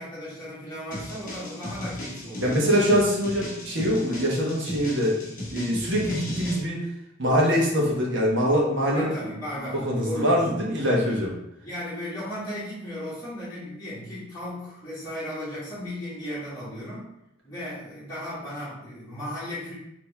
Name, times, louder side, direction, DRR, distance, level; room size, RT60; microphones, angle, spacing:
voice 1, 0.0-2.7 8.9-10.4 10.8-11.0 11.6-17.1 17.4-19.7, equal, 20° left, -15 dB, 1.7 m, -36 dB
sound 1, 0.9-6.6, left 1 dB, 40° left, 1.0 m, -37 dB
voice 2, 2.4-6.8 7.2-9.1 9.7-11.3, equal, 60° right, -3 dB, 1.2 m, -23 dB
4.5 x 3.1 x 3.4 m, 0.81 s
head